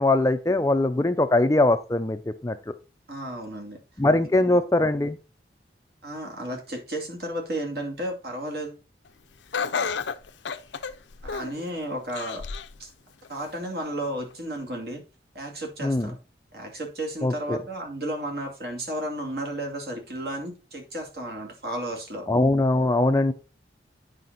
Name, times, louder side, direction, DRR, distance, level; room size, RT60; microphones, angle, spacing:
voice 1, 0.0-2.7 4.0-5.2 15.8-16.1 17.2-17.6 22.3-23.3, left 2 dB, 15° left, 10 dB, 0.4 m, -22 dB
voice 2, 3.1-3.8 4.5-4.6 6.0-8.8 11.2-12.4 12.8-12.9 13.3-15.0 15.3-16.2 16.5-22.3 23.0-23.3, right 1 dB, 60° right, 1 dB, 2.4 m, -33 dB
Laughter, 9.5-11.6 12.1-12.8 13.2-13.3 14.3-14.4, left 5 dB, 85° left, 0.6 m, -31 dB
9.2 x 5.1 x 4.0 m, 0.33 s
head